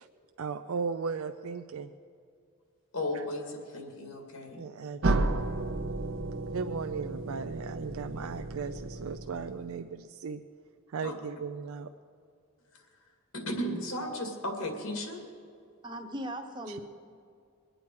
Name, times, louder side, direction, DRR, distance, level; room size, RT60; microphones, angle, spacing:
voice 1, 0.4-1.9 3.1-3.2 4.5-5.3 6.5-10.4 10.9-11.9 16.7-16.8, right 5 dB, 80° right, 7 dB, 0.4 m, -37 dB
voice 2, 2.9-4.6 11.0-11.1 12.7-12.8 13.3-15.2, left 1 dB, 80° left, 3 dB, 2.3 m, -35 dB
sound 1, 5.0-9.8, right 2 dB, 55° right, 0.8 m, -33 dB
voice 3, 15.8-16.8, right 1 dB, 20° right, 4 dB, 1.0 m, -38 dB
22.5 x 9.0 x 4.7 m, 2.4 s
head